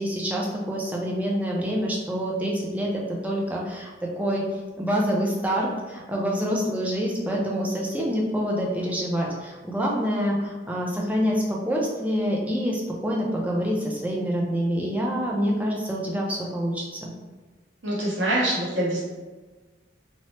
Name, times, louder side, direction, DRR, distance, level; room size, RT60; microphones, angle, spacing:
voice 1, 0.0-4.4 4.8-17.1, equal, 10° right, -3 dB, 0.4 m, -26 dB
voice 2, 17.8-19.0, right 1 dB, 70° right, -7 dB, 1.0 m, -24 dB
2.8 x 2.0 x 3.1 m, 1.3 s
head